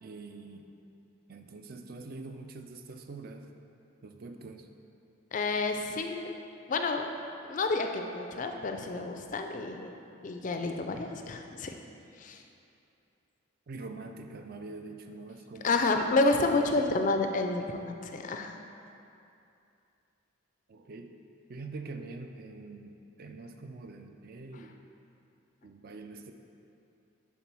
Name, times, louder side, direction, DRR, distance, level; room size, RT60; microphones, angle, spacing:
voice 1, 0.0-0.7 1.3-3.5 4.0-4.7 10.9-11.1 13.7-15.8 16.4-16.9 20.7-21.1 21.5-24.8 25.6-26.3, right 3 dB, 45° right, 6 dB, 0.4 m, -44 dB
voice 2, 5.3-6.3 6.7-7.1 7.4-11.8 12.2-12.4 15.6-18.6, left 3 dB, 35° left, 5 dB, 0.3 m, -30 dB
7.1 x 3.7 x 6.0 m, 2.7 s
head